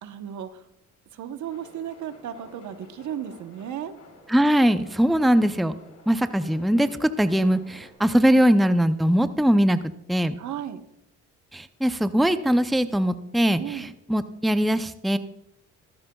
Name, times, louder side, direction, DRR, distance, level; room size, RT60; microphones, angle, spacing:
voice 1, 0.0-0.6 1.1-3.9 10.4-10.8 13.6-13.9, right 10 dB, 70° right, 9 dB, 1.1 m, -35 dB
sound 1, 1.4-7.9, left 2 dB, 55° left, 4.0 m, -50 dB
voice 2, 4.3-5.8 6.1-9.8 10.1-10.4 11.5-15.2, equal, ahead, 11 dB, 0.5 m, -21 dB
16.0 x 14.5 x 2.3 m, 0.77 s
cardioid pair, 90°, 30 cm